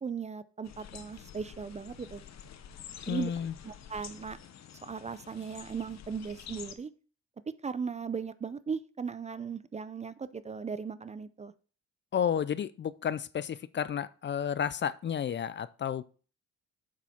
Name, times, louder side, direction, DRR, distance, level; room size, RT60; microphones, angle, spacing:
voice 1, 0.0-2.2 3.1-3.3 3.6-4.4 4.8-6.9 7.6-11.5, right 6 dB, 25° right, 15 dB, 0.4 m, -37 dB
sound 1, 0.6-6.7, left 8 dB, 60° left, 1.0 m, -48 dB
voice 2, 3.1-3.5 12.1-16.0, left 8 dB, 40° left, 17 dB, 0.4 m, -31 dB
7.2 x 6.2 x 4.3 m, 0.39 s
cardioid pair, 90°, 30 cm